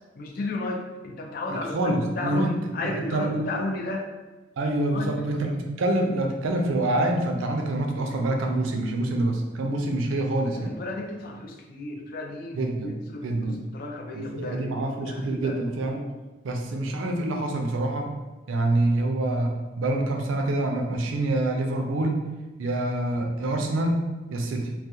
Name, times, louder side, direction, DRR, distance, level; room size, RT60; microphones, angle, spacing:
voice 1, 0.2-4.1 4.9-5.3 10.6-15.6, left 2 dB, 50° left, 1 dB, 0.4 m, -34 dB
voice 2, 1.5-2.6 2.8-3.5 4.6-10.8 12.6-13.6 14.1-16.0 16.4-18.2 18.5-22.2 22.6-24.8, right 1 dB, 85° right, 3 dB, 0.4 m, -26 dB
2.3 x 2.1 x 2.7 m, 1.2 s
head